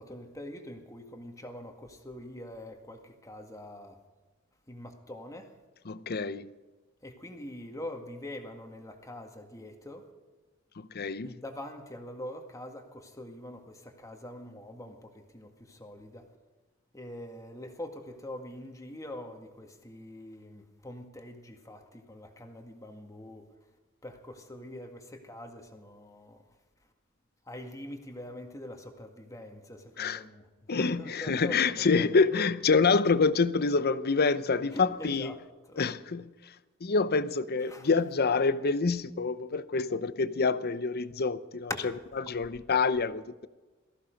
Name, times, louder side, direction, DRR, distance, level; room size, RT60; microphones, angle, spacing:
voice 1, 0.0-4.0 4.7-5.5 7.0-10.1 11.2-16.3 16.9-23.5 24.0-26.4 27.5-30.4 30.8-32.1 34.7-35.4 35.7-35.8 37.7-37.9, left 1 dB, 15° left, 1.9 m, -44 dB
voice 2, 5.9-6.5 10.8-11.3 30.0-30.2 30.7-35.3 35.8-36.3 36.8-41.7 42.2-43.5, left 4 dB, 50° left, 0.7 m, -27 dB
18.5 x 14.5 x 5.2 m
head